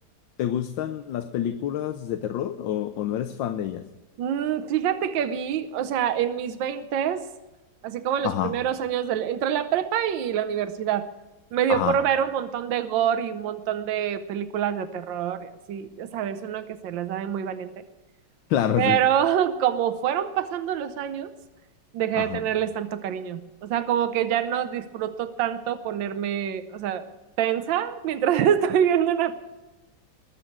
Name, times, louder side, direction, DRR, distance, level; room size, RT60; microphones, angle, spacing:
voice 1, 0.4-3.8 8.2-8.5 11.7-12.0 18.5-19.0 22.1-22.5, left 10 dB, 90° left, 9 dB, 1.5 m, -27 dB
voice 2, 4.2-7.3 7.8-11.1 11.5-17.8 18.8-21.3 21.9-27.1 27.4-29.4, right 9 dB, 90° right, 11 dB, 1.5 m, -26 dB
21.0 x 7.2 x 8.5 m, 1.1 s
omnidirectional pair, 2.0 m